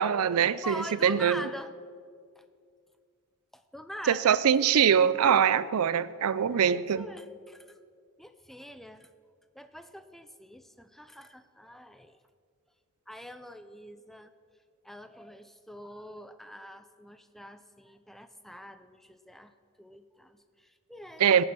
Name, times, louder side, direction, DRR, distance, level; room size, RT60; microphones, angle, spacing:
voice 1, 0.0-1.5 4.1-7.1 21.2-21.4, right 8 dB, 80° right, 0.4 m, -23 dB
voice 2, 0.6-1.7 2.4-2.5 3.5-4.4 6.5-7.8 8.2-9.1 9.5-12.2 13.1-14.3 14.8-19.5 19.8-21.4, equal, ahead, 0.4 m, -44 dB
18.0 x 7.1 x 6.2 m
head